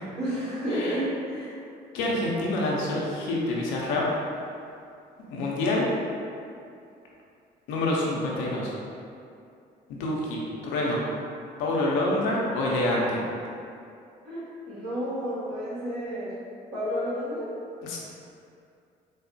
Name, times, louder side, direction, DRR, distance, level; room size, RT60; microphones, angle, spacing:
voice 1, 0.1-1.6 14.2-16.4 16.7-17.5, equal, 65° right, -10 dB, 1.4 m, -31 dB
voice 2, 0.7-1.0 1.9-4.1 5.3-5.9 7.7-8.8 9.9-11.0 11.6-13.3 17.8-18.0, left 1 dB, 75° left, -3 dB, 0.6 m, -27 dB
3.8 x 2.0 x 2.6 m, 2.5 s
hypercardioid pair, 55°, 20 cm